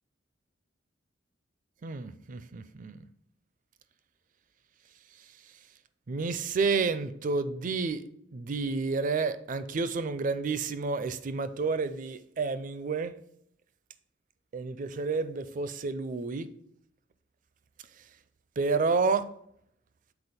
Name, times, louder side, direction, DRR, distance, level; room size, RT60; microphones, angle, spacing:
voice 1, 1.8-3.0 6.1-8.0 8.3-13.1 14.5-16.5 18.6-19.3, right 4 dB, 45° right, 0.4 m, -30 dB
6.9 x 4.0 x 4.2 m
head